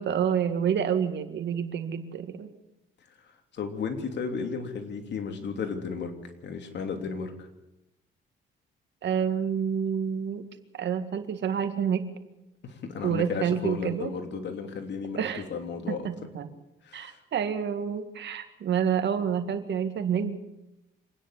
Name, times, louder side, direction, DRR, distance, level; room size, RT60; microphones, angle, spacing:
voice 1, 0.0-2.5 9.0-10.4 10.8-12.1 13.0-14.1 15.2-15.4 15.9-16.5 16.9-20.4, right 8 dB, 65° right, 9 dB, 2.0 m, -28 dB
voice 2, 3.5-7.5 12.6-16.1 16.8-17.2, left 5 dB, 60° left, 5 dB, 3.1 m, -34 dB
26.0 x 10.0 x 9.9 m, 0.96 s
cardioid pair, 90°, 20 cm